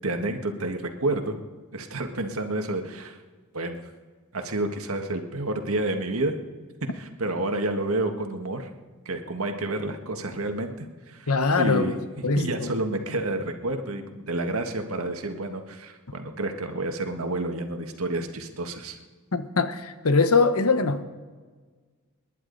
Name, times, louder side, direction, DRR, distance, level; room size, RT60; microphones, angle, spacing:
voice 1, 0.0-1.3 1.7-3.2 3.5-3.8 4.3-6.3 6.9-8.7 9.0-11.3 11.6-19.0, right 2 dB, 80° right, 1.7 m, -29 dB
voice 2, 11.3-11.9 12.2-12.7 19.3-21.0, left 4 dB, 85° left, 1.1 m, -22 dB
29.0 x 11.0 x 4.0 m
head